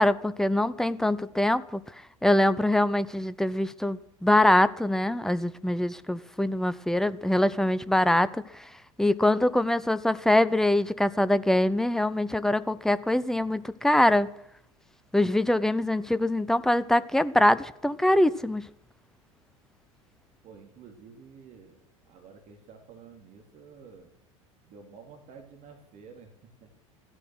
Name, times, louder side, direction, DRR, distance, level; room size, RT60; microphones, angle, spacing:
voice 1, 0.0-1.8 2.2-8.4 9.0-14.3 15.1-18.6, left 1 dB, 5° left, 0.8 m, -23 dB
voice 2, 20.4-24.1 24.7-26.3 26.6-26.7, right 5 dB, 45° right, 3.2 m, -50 dB
16.0 x 13.5 x 6.3 m
figure-of-eight pair, 75°, 17 cm